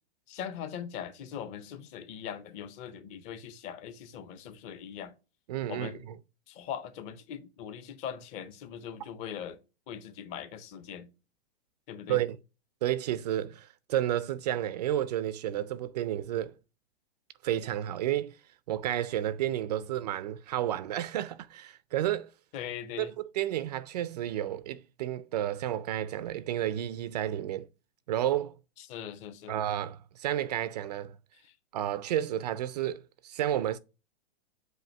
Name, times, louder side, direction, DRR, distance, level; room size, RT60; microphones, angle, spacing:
voice 1, 0.3-5.1 5.7-6.1 6.5-9.6 9.9-11.1 11.9-12.2 19.8-19.9 22.5-23.1 28.8-29.5 31.4-31.5, left 9 dB, 20° left, 0.5 m, -41 dB
voice 2, 5.5-6.2 12.1-12.4 12.8-16.5 17.4-18.3 18.7-22.3 23.0-27.7 28.1-28.5 29.5-31.1 31.7-33.8, right 12 dB, 40° right, 0.4 m, -31 dB
7.8 x 2.6 x 5.2 m
hypercardioid pair, 150°, 33 cm